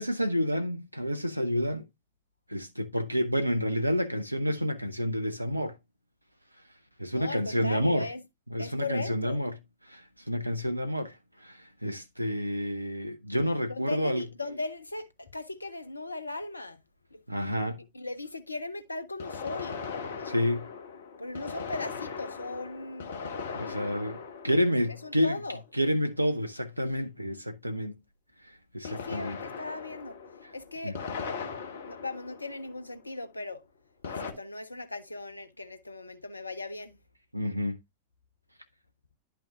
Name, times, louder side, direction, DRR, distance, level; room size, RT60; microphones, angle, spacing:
voice 1, 0.0-1.9 2.5-5.8 7.0-8.1 8.5-9.6 9.8-14.2 17.3-17.8 20.2-20.7 23.5-25.4 25.7-28.0 28.4-29.4 30.8-30.9 37.3-37.8, equal, 90° right, 0.4 m, -29 dB
voice 2, 7.1-8.2 8.6-9.4 13.7-16.8 17.1-17.2 17.9-19.8 21.2-23.2 25.0-25.6 28.8-30.2 30.5-31.0 31.8-33.6 34.1-37.0, left 2 dB, 80° left, 0.6 m, -38 dB
sound 1, 15.3-15.4 19.2-25.7 28.8-33.1 34.0-34.3, left 5 dB, 60° left, 1.1 m, -39 dB
10.5 x 5.7 x 2.4 m
figure-of-eight pair, 90°, 0 cm